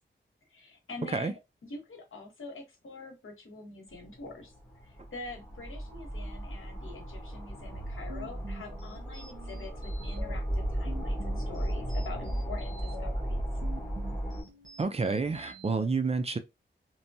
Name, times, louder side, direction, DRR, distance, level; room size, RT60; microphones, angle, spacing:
voice 1, 0.5-4.5 4.8-9.7 10.0-13.4, left 3 dB, 85° left, 1.1 m, -45 dB
sound 1, 3.9-14.4, right 1 dB, 10° left, 1.1 m, -35 dB
sound 2, 7.6-15.9, right 1 dB, 70° right, 1.1 m, -48 dB
voice 2, 14.8-16.4, right 4 dB, 30° right, 0.3 m, -29 dB
2.9 x 2.2 x 2.6 m
wide cardioid pair, 135°, 20 cm